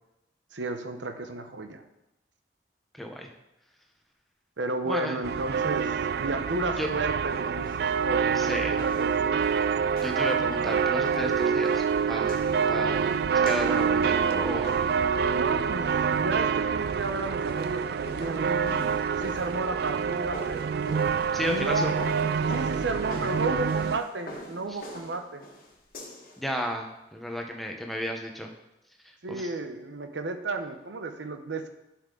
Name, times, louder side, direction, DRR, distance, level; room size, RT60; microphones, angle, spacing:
voice 1, 0.5-1.8 4.6-9.4 15.3-20.7 21.4-21.9 22.5-25.4 29.2-31.7, right 2 dB, 85° right, 7 dB, 0.8 m, -33 dB
voice 2, 2.9-3.3 4.9-5.2 6.8-6.9 8.3-8.8 10.0-14.8 21.3-22.1 24.7-24.8 26.4-28.5 29.3-29.5, equal, ahead, 2 dB, 0.9 m, -33 dB
sound 1, 5.2-24.0, right 6 dB, 60° right, 0.3 m, -26 dB
sound 2, 7.6-15.1 17.3-26.4, left 1 dB, 55° left, 1.7 m, -45 dB
11.0 x 5.6 x 3.8 m, 0.90 s
head